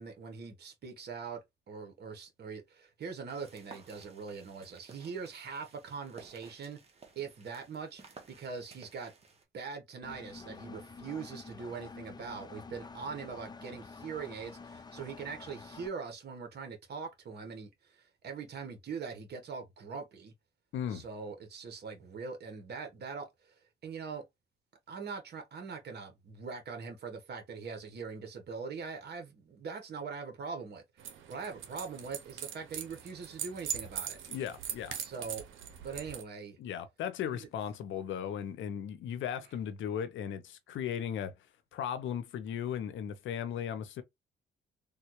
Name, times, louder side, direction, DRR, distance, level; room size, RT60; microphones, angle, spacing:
voice 1, 0.0-1.4 1.7-6.8 7.1-9.1 9.5-20.3 20.9-23.5 23.8-24.2 24.9-30.8 31.3-34.2 35.0-35.4 35.8-36.6 37.3-37.5, right 5 dB, 55° right, 1.2 m, -42 dB
sound 1, 3.3-9.4, right 4 dB, 30° right, 1.1 m, -56 dB
Engine, 10.0-15.9, left 4 dB, 20° left, 0.4 m, -48 dB
voice 2, 20.7-21.0 34.3-34.9 36.6-41.3 41.7-44.0, left 9 dB, 75° left, 0.6 m, -36 dB
sound 2, 31.0-36.2, right 9 dB, 80° right, 0.7 m, -41 dB
3.4 x 2.3 x 2.9 m
cardioid pair, 90°, 20 cm